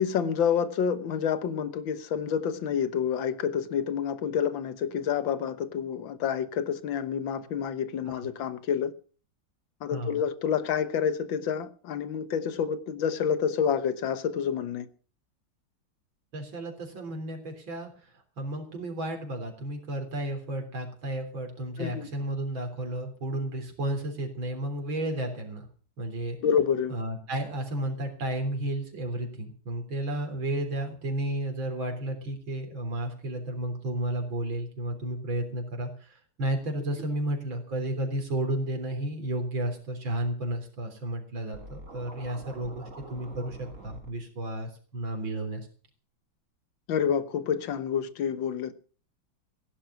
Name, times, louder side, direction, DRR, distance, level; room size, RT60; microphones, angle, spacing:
voice 1, 0.0-8.9 9.8-14.9 21.8-22.1 26.4-27.0 46.9-48.7, left 7 dB, 80° left, 1.9 m, -28 dB
voice 2, 9.9-10.2 16.3-25.7 26.0-26.4 26.9-45.7, right 1 dB, 85° right, 4.4 m, -32 dB
Scratching (performance technique), 41.5-44.1, right 1 dB, 40° right, 4.1 m, -45 dB
16.0 x 11.5 x 6.1 m
omnidirectional pair, 2.1 m